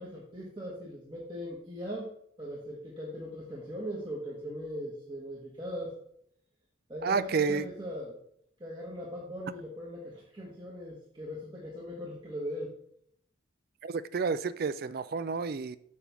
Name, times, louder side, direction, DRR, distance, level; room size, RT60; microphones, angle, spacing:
voice 1, 0.0-2.1 2.4-6.0 6.9-8.2 8.6-12.7, equal, 25° right, -5 dB, 1.4 m, -39 dB
voice 2, 7.0-7.7 13.8-15.8, right 5 dB, 50° right, 15 dB, 0.4 m, -30 dB
8.5 x 3.5 x 6.0 m, 0.68 s
head